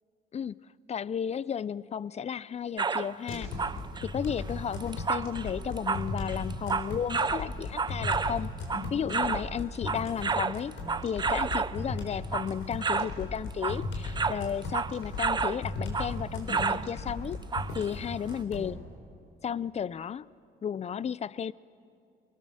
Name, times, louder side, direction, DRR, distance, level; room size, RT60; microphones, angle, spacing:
voice 1, 0.9-3.5 4.0-8.5 8.9-10.8 11.0-17.4 17.7-18.8 19.4-20.3 20.6-21.5, left 8 dB, 35° left, 21 dB, 0.4 m, -33 dB
sound 1, 2.8-3.1 3.5-9.5 9.8-11.8 12.2-12.6 12.8-13.2 13.5-15.6 15.9-16.2 16.5-16.9 17.5-17.9 18.4-18.5, right 5 dB, 20° right, 0.5 m, -30 dB
sound 2, 3.3-18.7, left 3 dB, 75° left, 4.3 m, -37 dB
24.0 x 20.0 x 6.4 m, 2.4 s
cardioid pair, 90°, 20 cm